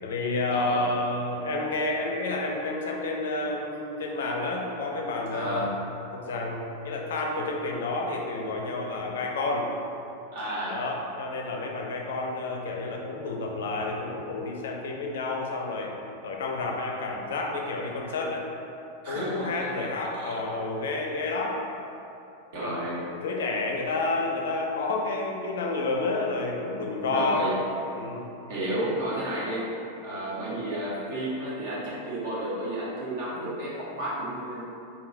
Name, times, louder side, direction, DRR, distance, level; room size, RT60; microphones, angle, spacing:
voice 1, 0.0-5.6 6.1-9.7 10.7-15.9 16.2-18.4 19.1-21.6 22.6-27.4 28.0-28.3 30.1-30.4, left 2 dB, 60° left, 0 dB, 0.5 m, -30 dB
voice 2, 0.5-0.9 5.3-5.7 10.3-10.8 19.0-19.7 20.1-20.2 22.5-23.0 27.0-27.6 28.5-29.7 30.0-34.6, right 1 dB, 55° right, -8 dB, 1.4 m, -32 dB
4.2 x 3.7 x 2.6 m, 2.8 s
figure-of-eight pair, 90°, 0 cm